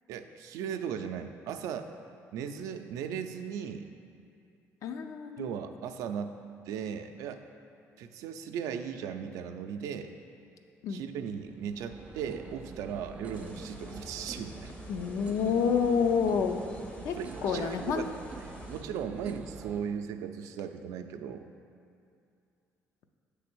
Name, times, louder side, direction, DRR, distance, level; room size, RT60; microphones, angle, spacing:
voice 1, 0.1-1.9 2.3-3.9 5.4-6.3 6.7-7.4 8.0-10.1 10.9-14.7 17.2-18.1 18.7-21.4, right 7 dB, 85° right, 7 dB, 0.4 m, -37 dB
voice 2, 4.8-5.5 10.8-11.0 14.9-16.6 17.0-17.1 17.4-18.0, left 6 dB, 70° left, 6 dB, 0.5 m, -28 dB
sound 1, 11.1-19.8, right 4 dB, 25° right, 0.4 m, -46 dB
sound 2, 13.3-18.8, left 1 dB, 25° left, 0.6 m, -49 dB
7.7 x 3.3 x 6.1 m, 2.5 s
cardioid pair, 105°, 6 cm